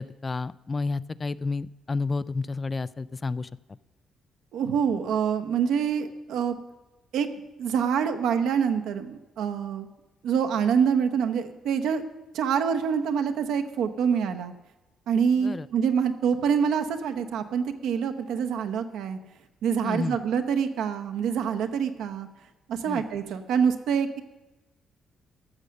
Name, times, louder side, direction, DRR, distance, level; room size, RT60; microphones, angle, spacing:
voice 1, 0.0-3.5 15.4-15.7 19.8-20.2 22.9-23.0, left 3 dB, 30° left, 17 dB, 0.3 m, -30 dB
voice 2, 4.5-6.6 7.1-7.3 7.6-9.9 10.2-12.0 12.3-14.5 15.1-19.2 19.6-22.3 22.7-24.2, right 7 dB, 80° right, 7 dB, 0.9 m, -26 dB
13.5 x 6.5 x 6.4 m, 1.1 s
cardioid pair, 90°, 0 cm